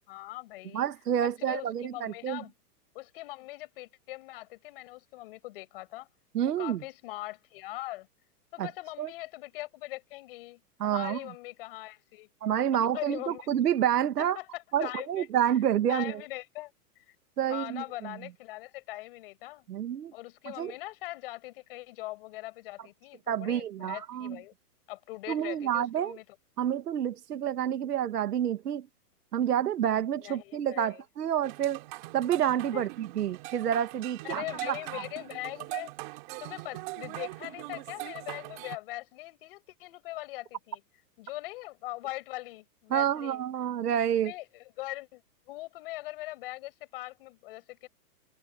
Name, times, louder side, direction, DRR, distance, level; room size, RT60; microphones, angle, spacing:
voice 1, 0.0-0.9 1.2-2.5 2.9-6.1 6.6-8.1 8.5-12.3 12.7-13.5 14.2-15.3 15.9-16.7 17.5-19.6 20.1-24.5 24.9-26.2 30.2-31.0 32.7-32.9 34.2-35.9 36.4-40.8 41.2-43.4 44.2-45.2 45.5-47.9, left 19 dB, 35° left, 6.7 m, -41 dB
voice 2, 0.7-2.4 6.3-6.8 8.6-8.7 9.0-9.1 10.8-11.2 12.4-14.4 14.7-16.2 17.4-18.1 19.7-20.1 20.5-20.7 23.3-24.4 25.3-26.2 26.6-28.9 29.3-31.8 32.1-35.0 42.9-44.3, right 10 dB, 75° right, 2.0 m, -29 dB
sound 1, 31.4-38.8, right 25 dB, 30° right, 6.2 m, -41 dB
hypercardioid pair, 175°, 47 cm